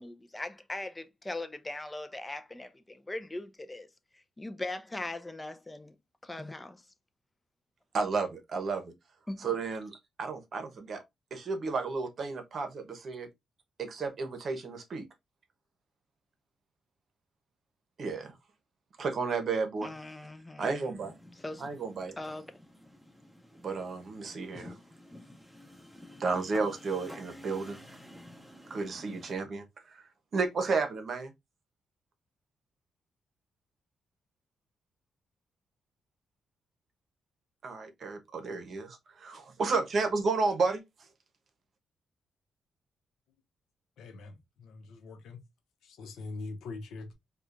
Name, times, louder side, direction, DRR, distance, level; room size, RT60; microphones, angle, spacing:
voice 1, 0.0-3.9 4.1-6.0 6.2-6.8 9.3-9.5 19.8-20.9 21.4-21.7 22.2-22.6, left 2 dB, 15° left, 0.6 m, -40 dB
voice 2, 7.9-8.9 9.4-11.0 11.3-13.3 13.8-15.0 18.0-18.3 19.0-19.9 20.6-21.1 21.6-22.2 23.6-24.8 26.2-27.8 28.7-30.0 30.3-31.3 37.6-40.8, right 4 dB, 55° right, 0.9 m, -32 dB
sound 1, 20.9-29.4, left 1 dB, ahead, 1.4 m, -50 dB
voice 3, 44.0-45.4 45.8-47.1, left 3 dB, 85° left, 0.8 m, -43 dB
4.7 x 2.4 x 2.5 m
cardioid pair, 95°, 0 cm